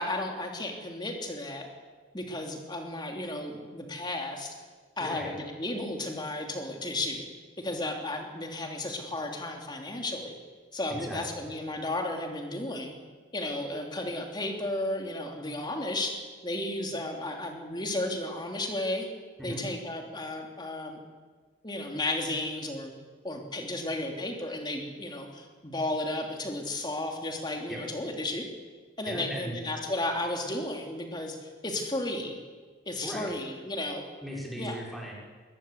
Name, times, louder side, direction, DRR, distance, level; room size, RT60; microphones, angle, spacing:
voice 1, 0.0-1.7 2.1-4.5 5.0-7.2 7.6-10.3 10.7-12.9 13.3-16.2 16.4-19.1 19.4-21.0 21.6-22.9 23.2-28.4 29.0-32.4 32.8-34.0 34.6-34.7, left 1 dB, 20° left, 2 dB, 3.2 m, -33 dB
voice 2, 5.0-5.3 11.0-11.5 19.4-19.6 27.7-27.8 29.1-29.5 33.0-33.3 34.2-35.1, equal, ahead, -4 dB, 5.9 m, -38 dB
21.5 x 20.0 x 8.3 m, 1.5 s
head